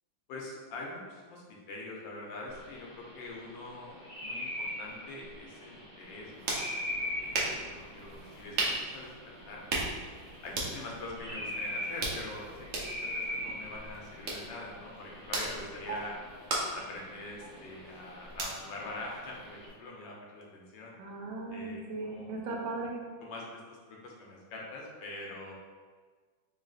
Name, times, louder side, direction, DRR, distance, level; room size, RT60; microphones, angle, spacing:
voice 1, 0.3-10.0 10.4-16.2 16.7-20.9 21.5-22.3 23.2-25.5, left 2 dB, 80° left, -2 dB, 1.4 m, -44 dB
sound 1, 2.5-19.7, left 1 dB, 55° right, 1.3 m, -42 dB
sound 2, 6.0-19.7, right 2 dB, 70° right, 0.6 m, -38 dB
voice 2, 21.0-23.0, right 3 dB, 90° right, -1 dB, 1.5 m, -37 dB
3.8 x 3.5 x 2.4 m, 1.5 s
omnidirectional pair, 2.1 m